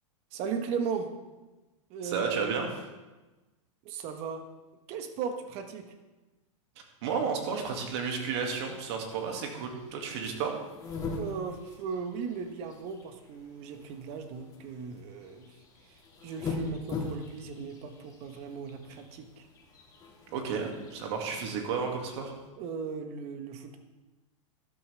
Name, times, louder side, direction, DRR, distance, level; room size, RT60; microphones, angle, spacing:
voice 1, 0.3-1.1 1.9-2.5 3.8-4.4 4.9-5.9 11.2-15.5 16.2-19.5 22.6-23.8, right 6 dB, 40° right, 6 dB, 1.4 m, -37 dB
voice 2, 2.0-2.7 7.0-10.6 20.3-22.3, right 5 dB, 55° right, 2 dB, 2.3 m, -32 dB
sound 1, 7.1-22.5, left 4 dB, 20° left, 2.3 m, -43 dB
13.0 x 12.0 x 3.5 m, 1.1 s
supercardioid pair, 145°, 17 cm